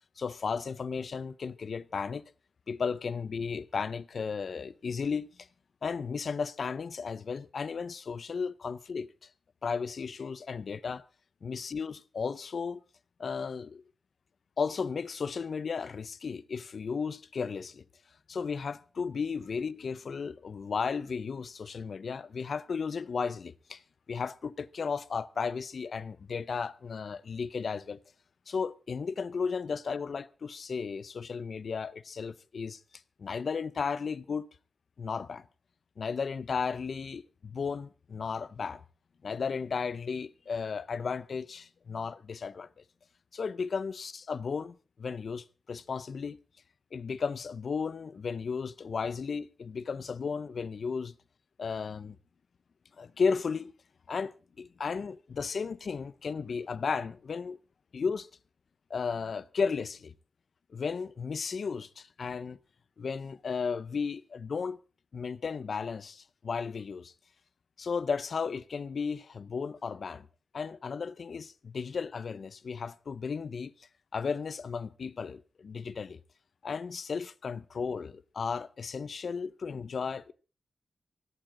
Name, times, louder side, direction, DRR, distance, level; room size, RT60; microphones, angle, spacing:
voice 1, 0.2-2.2 2.7-5.3 5.8-9.3 9.6-11.0 11.4-12.8 13.2-13.8 14.6-17.8 18.3-23.8 24.1-28.0 28.5-32.8 33.2-34.5 35.0-35.5 36.0-38.8 39.2-42.7 43.3-46.4 46.9-51.1 51.6-52.2 53.0-53.7 54.1-57.6 57.9-58.3 58.9-60.1 60.7-62.6 63.0-64.8 65.1-67.1 67.8-70.3 70.5-76.2 76.6-80.3, left 5 dB, 60° left, 0.6 m, -34 dB
17.0 x 16.5 x 3.8 m
wide cardioid pair, 140°, 0 cm